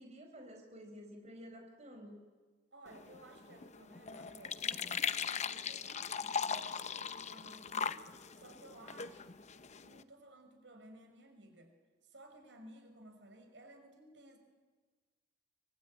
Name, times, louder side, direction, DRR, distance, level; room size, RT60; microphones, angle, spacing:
voice 1, 0.0-2.2, equal, 40° right, 3 dB, 4.8 m, -51 dB
voice 2, 2.7-8.0 8.3-9.4 9.8-11.7 12.0-14.4, right 1 dB, 90° right, 4 dB, 5.7 m, -57 dB
sound 1, 2.9-10.0, left 6 dB, 40° left, 0.8 m, -40 dB
25.0 x 24.5 x 9.1 m, 1.4 s
head